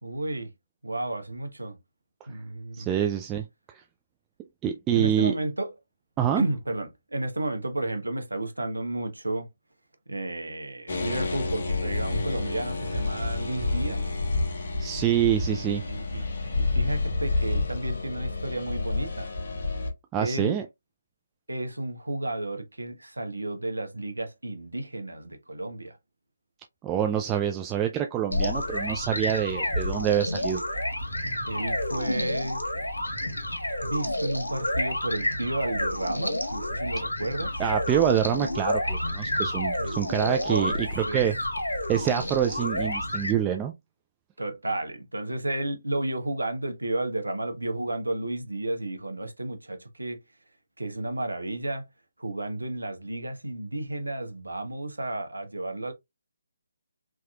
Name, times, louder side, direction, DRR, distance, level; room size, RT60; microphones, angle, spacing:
voice 1, 0.0-0.5 0.8-1.8 2.3-2.9 4.9-5.7 6.3-9.5 10.1-14.1 15.5-16.2 16.5-19.3 20.2-20.6 21.5-26.0 31.5-32.6 33.8-37.6 39.8-40.0 40.5-41.2 44.4-50.2 50.8-51.8 52.2-55.9, right 1 dB, 80° right, 1.0 m, -32 dB
voice 2, 2.7-3.4 4.6-5.3 6.2-6.4 14.8-15.8 20.1-20.6 26.8-30.6 37.6-41.4 41.9-43.7, right 10 dB, 15° right, 0.3 m, -26 dB
sound 1, 10.9-19.9, left 3 dB, 50° left, 1.0 m, -29 dB
sound 2, 28.3-43.3, left 1 dB, 80° left, 1.2 m, -30 dB
4.7 x 2.9 x 2.3 m
figure-of-eight pair, 145°, 0 cm